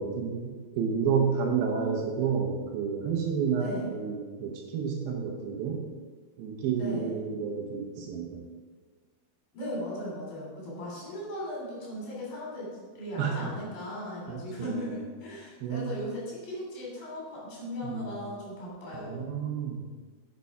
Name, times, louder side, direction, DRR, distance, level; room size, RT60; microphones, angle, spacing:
voice 1, 0.0-5.8 6.4-8.4 13.2-13.5 14.3-15.0 15.6-15.9 17.8-18.2 18.9-19.8, right 6 dB, 75° right, 1 dB, 2.6 m, -30 dB
voice 2, 6.7-7.2 9.5-19.3, left 1 dB, 60° left, -5 dB, 4.6 m, -38 dB
8.3 x 6.6 x 4.7 m, 1.5 s
omnidirectional pair, 4.6 m